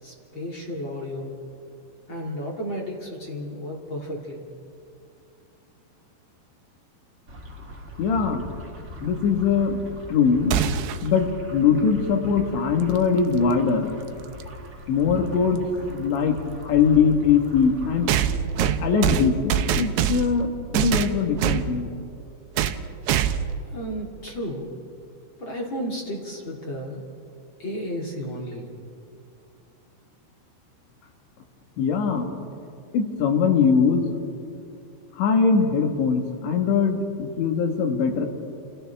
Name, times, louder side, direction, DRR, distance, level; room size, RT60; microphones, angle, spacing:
voice 1, 0.0-1.3 2.1-4.5 23.7-24.7 25.4-27.0 27.6-28.7, equal, 40° left, -2 dB, 2.0 m, -33 dB
sound 1, 7.3-18.2, equal, 30° right, 1.2 m, -40 dB
voice 2, 8.0-8.5 9.0-10.6 11.0-13.9 14.9-16.4 16.7-18.1 18.6-21.9 31.8-32.3 32.9-34.2 35.2-38.3, left 6 dB, 80° left, 4 dB, 3.8 m, -22 dB
sound 2, 10.5-11.1 13.2-13.3 14.4-14.5 18.1-20.4 20.7-21.7 22.6-22.8 23.1-23.6, right 9 dB, 75° right, 2.6 m, -23 dB
29.5 x 28.5 x 3.5 m, 2.5 s
omnidirectional pair, 5.2 m